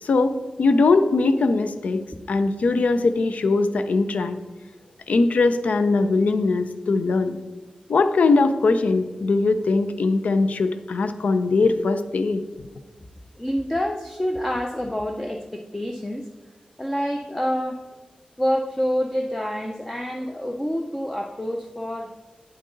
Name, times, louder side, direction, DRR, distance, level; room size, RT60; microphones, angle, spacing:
voice 1, 0.0-2.0 2.3-4.4 5.1-7.4 7.9-12.4, left 3 dB, 75° left, 10 dB, 0.5 m, -21 dB
voice 2, 13.4-16.3 16.8-17.9 18.4-22.1, equal, 10° left, 3 dB, 0.5 m, -27 dB
9.3 x 7.5 x 3.8 m, 1.2 s
wide cardioid pair, 140°, 2 cm